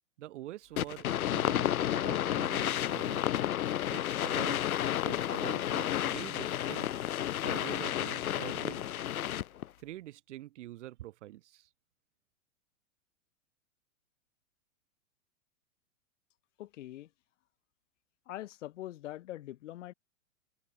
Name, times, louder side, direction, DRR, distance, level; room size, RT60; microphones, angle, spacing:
voice 1, 0.2-1.7 1.9-3.2 3.9-4.6 5.0-6.9 7.4-8.9 9.8-11.7, right 15 dB, 55° right, 1.4 m, -45 dB
sound 1, 0.8-9.7, left 11 dB, 85° left, 1.2 m, -31 dB
voice 2, 16.6-17.1 18.3-19.9, left 14 dB, 60° left, 1.7 m, -43 dB
hypercardioid pair, 150°, 42 cm